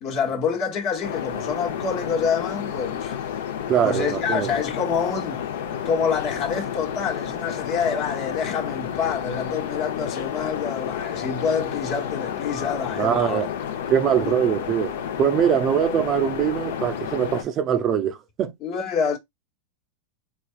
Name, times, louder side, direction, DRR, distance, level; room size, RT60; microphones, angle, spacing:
voice 1, 0.0-3.2 3.8-5.4 5.8-13.4 14.2-14.3 18.6-19.2, left 6 dB, 45° left, 1.1 m, -27 dB
sound 1, 1.0-17.4, left 8 dB, 75° left, 0.7 m, -31 dB
voice 2, 3.7-4.5 13.0-13.5 13.9-18.5, right 9 dB, 30° right, 0.4 m, -22 dB
3.6 x 3.4 x 2.5 m
supercardioid pair, 135°, 0 cm